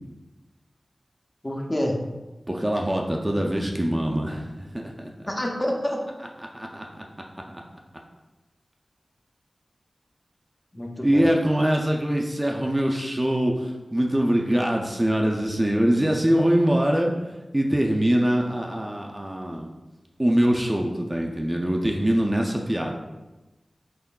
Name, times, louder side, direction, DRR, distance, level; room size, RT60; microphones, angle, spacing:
voice 1, 1.4-2.0 5.3-6.0 10.7-11.3, left 1 dB, 25° left, 0 dB, 0.6 m, -27 dB
voice 2, 2.5-5.1 6.4-7.0 11.0-19.7 20.2-23.0, right 1 dB, 20° right, 0 dB, 0.4 m, -23 dB
3.6 x 3.6 x 2.3 m, 1.1 s
cardioid pair, 45°, 0 cm